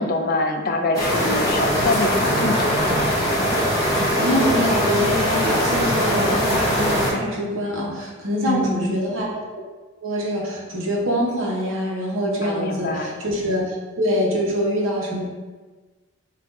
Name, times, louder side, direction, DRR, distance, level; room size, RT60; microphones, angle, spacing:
voice 1, 0.0-2.9 8.4-8.9 12.4-13.1, left 2 dB, 50° left, 4 dB, 0.4 m, -25 dB
sound 1, 0.9-7.1, equal, 20° left, 1.2 m, -21 dB
voice 2, 3.8-9.3 10.0-15.2, equal, 90° right, -2 dB, 0.9 m, -24 dB
5.7 x 2.5 x 2.6 m, 1.3 s
head